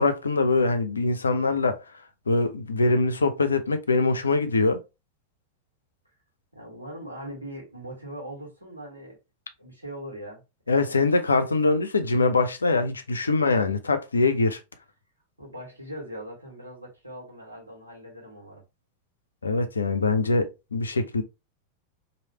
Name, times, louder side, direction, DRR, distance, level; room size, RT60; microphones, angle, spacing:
voice 1, 0.0-1.8 2.3-4.8 10.7-14.6 19.4-20.5 20.7-21.2, left 3 dB, 75° left, 0.5 m, -23 dB
voice 2, 6.5-9.2 9.6-11.1 15.4-18.6, right 1 dB, 85° right, 1.4 m, -41 dB
3.1 x 2.6 x 2.8 m
figure-of-eight pair, 90°, 0 cm